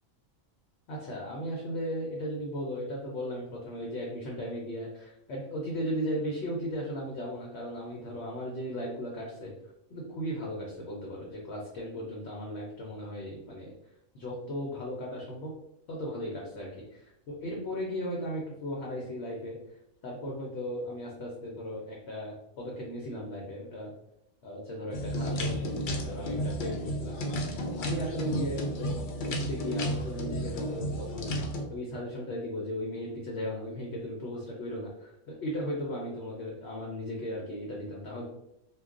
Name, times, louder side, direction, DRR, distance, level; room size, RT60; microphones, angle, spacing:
voice 1, 0.9-9.5 9.9-13.7 14.1-15.5 15.9-19.6 20.0-23.9 24.4-27.2 27.6-28.9 29.3-31.3 31.7-38.2, equal, 60° left, -2 dB, 0.8 m, -36 dB
sound 1, 24.9-31.6, equal, 80° left, 0.4 m, -32 dB
2.3 x 2.3 x 3.6 m, 0.82 s
omnidirectional pair, 1.4 m